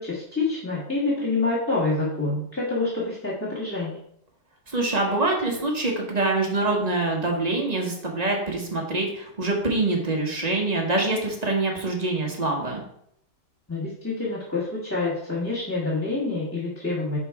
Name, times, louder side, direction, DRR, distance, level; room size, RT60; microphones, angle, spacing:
voice 1, 0.0-4.0 13.7-17.2, left 3 dB, 10° left, -5 dB, 1.3 m, -27 dB
voice 2, 4.7-12.8, right 2 dB, 30° right, 0 dB, 1.0 m, -25 dB
5.8 x 3.9 x 4.6 m, 0.70 s
omnidirectional pair, 1.7 m